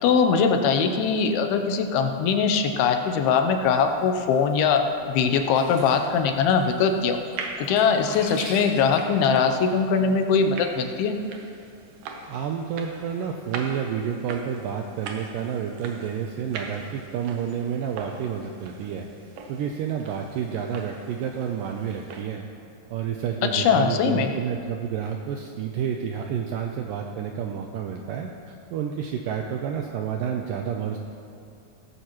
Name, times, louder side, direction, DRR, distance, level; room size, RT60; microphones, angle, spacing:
voice 1, 0.0-7.2 7.6-11.2 23.5-24.3, left 6 dB, 80° left, 5 dB, 2.6 m, -21 dB
Sink (filling or washing), 3.6-9.7, left 1 dB, 50° left, 5.2 m, -44 dB
sound 1, 6.2-22.2, right 4 dB, 70° right, 2.2 m, -42 dB
voice 2, 12.3-19.1 19.5-22.5 22.9-31.0, right 8 dB, 90° right, 3 dB, 2.0 m, -30 dB
16.5 x 14.0 x 3.1 m, 2.4 s
omnidirectional pair, 4.6 m